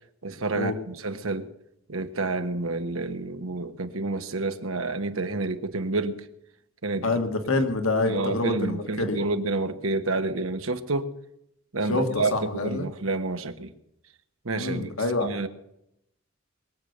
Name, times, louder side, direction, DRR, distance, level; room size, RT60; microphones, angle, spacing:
voice 1, 0.2-1.5 1.9-6.2 6.8-7.0 7.6-7.7 8.1-11.1 11.7-13.7 14.4-14.9 15.2-15.5, right 3 dB, 85° right, 1.3 m, -29 dB
voice 2, 7.0-9.2 11.9-12.9 14.5-15.3, left 2 dB, 90° left, 1.7 m, -26 dB
22.5 x 8.0 x 6.8 m
head